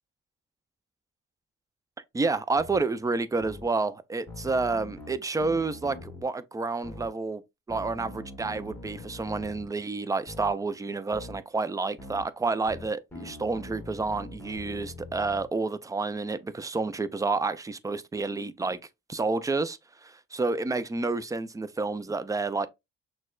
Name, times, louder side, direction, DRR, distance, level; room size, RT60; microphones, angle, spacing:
voice 1, 2.1-7.4 7.7-18.8 19.1-22.7, right 3 dB, 10° right, 0.3 m, -29 dB
sound 1, 2.6-2.8 3.4-3.7 4.3-6.2 6.8-7.1 7.7-9.7 10.3-10.5 11.1-11.4 12.0-12.2 12.7-15.5, left 2 dB, 5° left, 1.1 m, -43 dB
6.1 x 2.2 x 2.3 m
cardioid pair, 90°, 30 cm